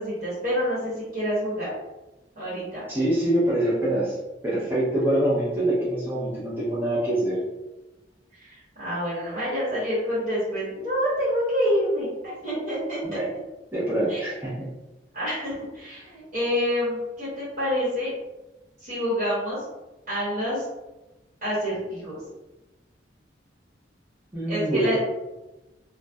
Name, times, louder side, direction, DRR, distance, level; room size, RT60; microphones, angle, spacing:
voice 1, 0.0-1.7 2.4-2.8 8.3-13.0 14.1-14.2 15.1-18.1 18.8-19.6 20.1-20.7 21.4-22.2 24.5-25.0, equal, 50° right, -10 dB, 1.0 m, -27 dB
voice 2, 2.9-4.1 4.4-7.4 13.0-13.3 13.7-14.7 24.3-25.0, right 1 dB, 10° right, -10 dB, 0.5 m, -24 dB
2.6 x 2.1 x 2.2 m, 1.0 s
head